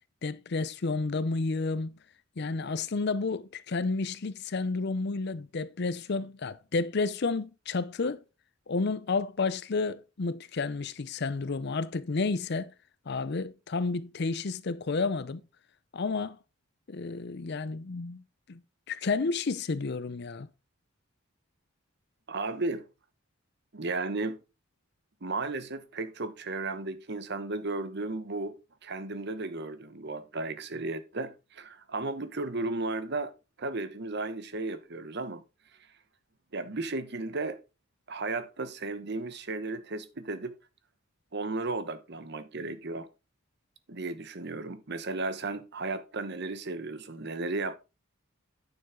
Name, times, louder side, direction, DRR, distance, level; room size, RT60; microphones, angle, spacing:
voice 1, 0.2-1.9 2.4-8.2 8.7-12.7 13.1-15.4 15.9-16.4 16.9-18.2 18.5-18.6 18.9-20.5, left 3 dB, 55° left, 0.6 m, -31 dB
voice 2, 22.3-22.8 23.7-24.4 25.2-33.3 33.6-35.4 35.8-35.9 36.5-37.6 38.1-40.5 41.3-43.1 43.9-47.7, right 3 dB, 55° right, 1.0 m, -34 dB
9.4 x 7.0 x 3.7 m
head